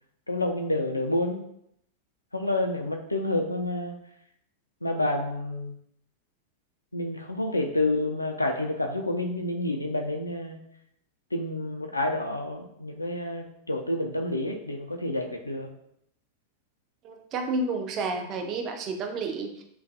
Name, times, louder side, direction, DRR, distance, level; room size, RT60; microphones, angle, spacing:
voice 1, 0.3-1.4 2.3-4.0 4.8-5.7 6.9-10.6 11.3-15.7, left 1 dB, 85° left, 3 dB, 0.3 m, -29 dB
voice 2, 17.0-19.6, right 3 dB, 35° right, 4 dB, 0.4 m, -31 dB
2.5 x 2.2 x 2.5 m, 0.75 s
figure-of-eight pair, 90°, 0 cm